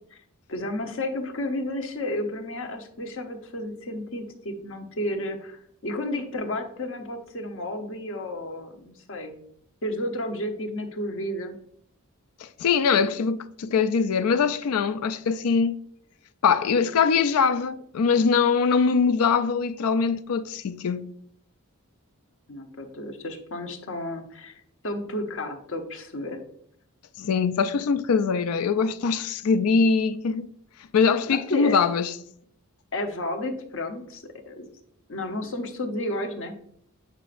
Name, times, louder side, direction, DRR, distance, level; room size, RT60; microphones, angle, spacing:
voice 1, 0.5-9.4 9.8-11.6 22.5-26.4 31.3-31.8 32.9-34.7 35.1-36.6, left 1 dB, 60° left, 0.9 m, -32 dB
voice 2, 12.4-15.8 16.4-21.1 27.2-30.5 30.9-32.1, left 5 dB, 80° left, 0.4 m, -22 dB
8.1 x 5.0 x 2.5 m
head